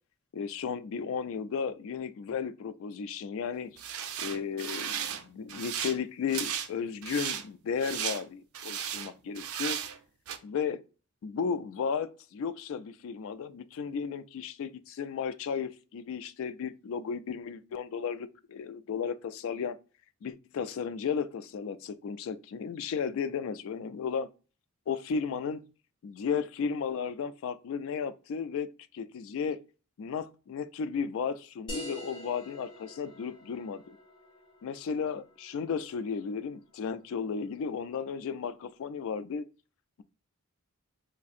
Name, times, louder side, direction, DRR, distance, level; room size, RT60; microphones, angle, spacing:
voice 1, 0.3-3.7 4.2-9.8 10.4-10.8 11.2-19.8 20.2-24.3 24.9-25.6 26.0-28.7 28.9-29.6 30.0-34.0 34.6-39.5, left 6 dB, 65° left, 0.3 m, -34 dB
sound 1, 3.8-5.2 5.5-6.0 6.3-6.7 7.0-7.4 7.8-8.2 8.5-9.1 9.4-10.0 10.3-10.4, right 9 dB, 85° right, 0.4 m, -35 dB
sound 2, 31.7-36.8, left 1 dB, 25° left, 1.3 m, -46 dB
4.1 x 2.6 x 2.4 m
head